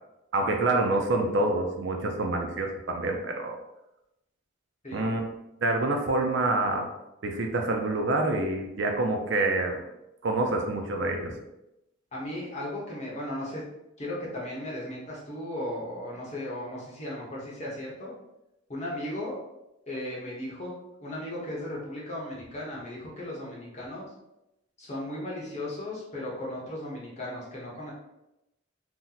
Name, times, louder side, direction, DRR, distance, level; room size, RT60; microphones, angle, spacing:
voice 1, 0.3-3.6 4.9-5.2 5.6-6.9 7.2-9.8 10.2-11.3, right 2 dB, 60° right, 3 dB, 0.4 m, -27 dB
voice 2, 4.8-5.2 12.1-13.6 14.0-18.1 18.7-19.4 19.9-20.7 21.0-24.0 24.8-27.9, left 1 dB, 35° left, -5 dB, 0.9 m, -36 dB
2.8 x 2.1 x 3.8 m, 0.90 s
head